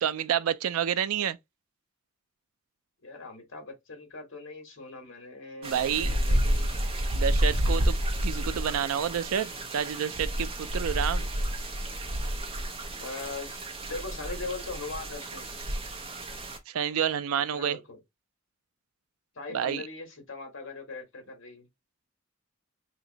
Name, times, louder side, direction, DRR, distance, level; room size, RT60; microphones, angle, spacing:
voice 1, 0.0-1.4 5.6-6.1 7.1-8.0 8.2-11.2 16.7-17.8 19.5-19.8, right 8 dB, 85° right, 0.4 m, -29 dB
voice 2, 3.0-6.8 7.7-7.9 8.3-8.4 13.0-15.5 17.5-18.0 19.3-21.7, left 3 dB, 65° left, 1.4 m, -40 dB
sound 1, 5.6-16.6, equal, 25° right, 0.6 m, -30 dB
2.9 x 2.6 x 3.9 m
head